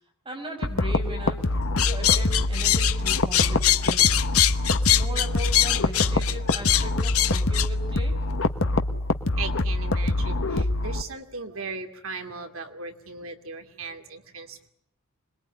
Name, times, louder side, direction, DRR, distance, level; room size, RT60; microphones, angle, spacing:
voice 1, 0.3-1.4 1.8-4.0 4.7-8.2, equal, 25° right, 3 dB, 5.5 m, -38 dB
sound 1, 0.6-11.0, left 2 dB, 65° left, 1.4 m, -25 dB
sound 2, 1.8-7.7, left 13 dB, 80° left, 1.1 m, -22 dB
voice 2, 9.3-14.7, right 4 dB, 70° right, 6 dB, 2.6 m, -37 dB
26.0 x 21.5 x 10.0 m, 0.72 s
head